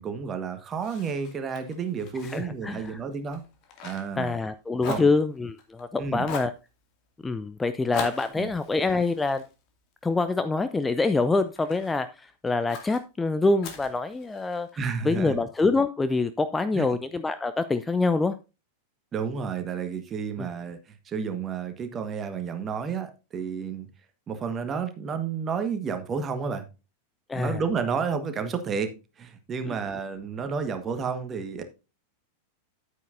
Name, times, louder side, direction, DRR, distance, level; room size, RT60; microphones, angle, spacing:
voice 1, 0.0-3.4 3.8-4.3 4.9-5.1 6.0-6.3 8.3-8.5 14.8-15.4 16.7-16.9 19.1-23.9 24.3-26.6 27.3-31.6, right 6 dB, 25° right, 1.5 m, -31 dB
Fire, 0.8-4.5 4.8-5.8 6.2-6.6 7.9-10.3 10.8-12.0 12.7-13.0 13.6-14.7, left 5 dB, 40° left, 2.4 m, -40 dB
voice 2, 2.3-3.0 4.2-6.5 7.2-9.4 10.0-14.7 15.0-18.3 20.4-20.5 27.3-27.6 29.7-29.8, left 3 dB, 10° left, 0.5 m, -25 dB
9.8 x 9.1 x 2.6 m
figure-of-eight pair, 90°, 0 cm